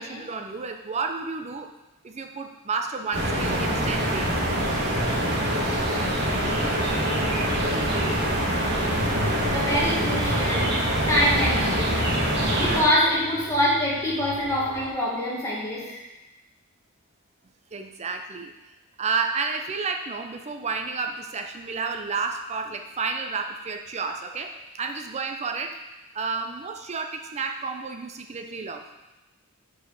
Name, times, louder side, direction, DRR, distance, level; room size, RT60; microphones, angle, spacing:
voice 1, 0.0-1.7 2.0-4.3 17.7-18.5 19.0-25.8 26.1-28.8, right 4 dB, 30° right, 5 dB, 0.5 m, -31 dB
sound 1, 3.1-12.8, right 1 dB, 55° right, 1.4 m, -24 dB
sound 2, 7.8-14.9, equal, 90° right, 1.3 m, -38 dB
voice 2, 9.5-10.7 11.1-12.0 12.3-16.0, equal, 15° left, -6 dB, 1.7 m, -25 dB
5.0 x 4.9 x 5.2 m, 1.1 s
head